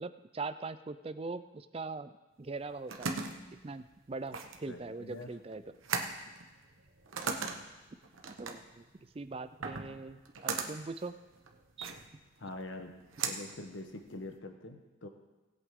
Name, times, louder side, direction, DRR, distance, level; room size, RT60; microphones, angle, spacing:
voice 1, 0.0-2.1 2.4-3.1 3.6-5.6 8.4-8.8 9.1-11.1 11.8-11.9, right 3 dB, 30° right, 12 dB, 0.4 m, -41 dB
sound 1, 2.5-14.4, right 5 dB, 85° right, 1.1 m, -40 dB
voice 2, 4.7-5.3 12.4-12.9 13.2-15.1, left 2 dB, 70° left, 5 dB, 1.1 m, -44 dB
18.5 x 8.2 x 3.7 m, 1.2 s
head